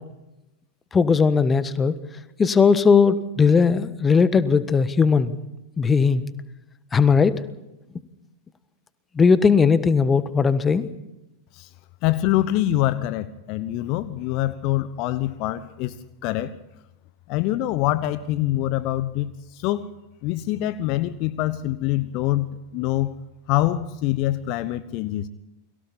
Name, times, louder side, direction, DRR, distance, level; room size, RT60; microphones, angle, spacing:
voice 1, 0.9-1.9 2.4-5.4 5.8-6.3 6.9-7.4 9.1-10.9, left 5 dB, 15° left, 14 dB, 1.4 m, -18 dB
voice 2, 12.0-16.5 17.3-19.9 20.2-23.1 23.5-25.3, left 14 dB, 40° left, 15 dB, 1.0 m, -25 dB
30.0 x 23.0 x 4.2 m, 0.93 s
figure-of-eight pair, 90°, 0 cm